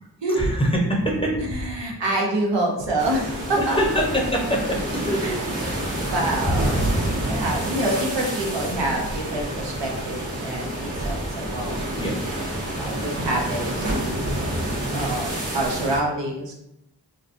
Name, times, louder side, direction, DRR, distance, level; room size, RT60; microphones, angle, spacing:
voice 1, 0.3-1.8 2.1-2.3 3.5-6.0 6.5-6.9 12.0-12.2, equal, 15° left, -1 dB, 0.8 m, -25 dB
voice 2, 1.5-3.8 5.2-5.3 6.1-6.8 7.3-12.2 12.8-14.2 14.9-16.5, right 1 dB, 80° right, -1 dB, 0.8 m, -27 dB
sound 1, 3.0-16.0, right 1 dB, 45° right, 1.2 m, -28 dB
4.0 x 2.2 x 2.5 m, 0.82 s
cardioid pair, 55°, 42 cm